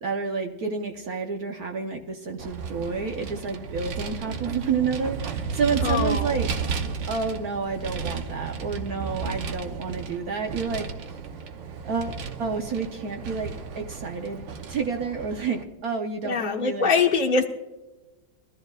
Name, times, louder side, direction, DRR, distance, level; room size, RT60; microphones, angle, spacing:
voice 1, 0.0-6.5 7.1-10.9 11.8-16.9, right 5 dB, 60° right, 3 dB, 1.3 m, -29 dB
Vehicle, 2.4-15.6, right 5 dB, 85° right, 1.6 m, -33 dB
voice 2, 5.8-6.3 16.2-17.4, left 5 dB, 30° left, -3 dB, 1.1 m, -23 dB
21.0 x 13.5 x 2.4 m, 1.1 s
omnidirectional pair, 2.0 m